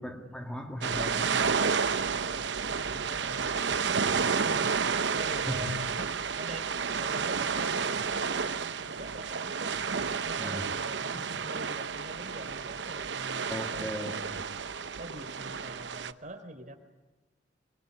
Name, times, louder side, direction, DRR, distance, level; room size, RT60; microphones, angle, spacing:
voice 1, 0.0-1.5 5.5-5.7 10.4-10.7 11.1-11.3 13.5-14.4, equal, 5° left, 2.1 m, -38 dB
sound 1, 0.8-16.1, right 5 dB, 75° right, 0.9 m, -31 dB
voice 2, 2.2-4.7 5.1-9.7 10.1-13.9 15.0-16.8, right 1 dB, 45° right, 3.7 m, -45 dB
25.0 x 22.5 x 9.9 m
head